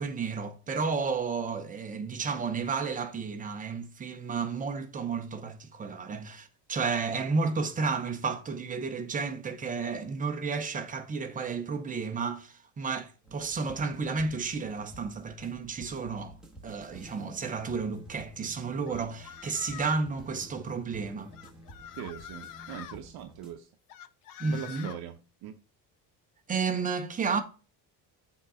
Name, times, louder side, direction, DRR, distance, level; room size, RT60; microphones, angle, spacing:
voice 1, 0.0-16.4 16.6-21.4 24.4-24.9 26.5-27.4, right 4 dB, 20° right, 0.7 m, -32 dB
sound 1, 13.2-23.5, right 1 dB, ahead, 1.3 m, -51 dB
sound 2, 18.9-20.1 21.3-23.0 23.9-25.0, left 10 dB, 50° left, 0.5 m, -45 dB
voice 2, 22.0-23.7 24.4-25.2 25.4-25.5, right 10 dB, 55° right, 0.8 m, -41 dB
7.2 x 3.8 x 5.5 m
cardioid pair, 175°, 44 cm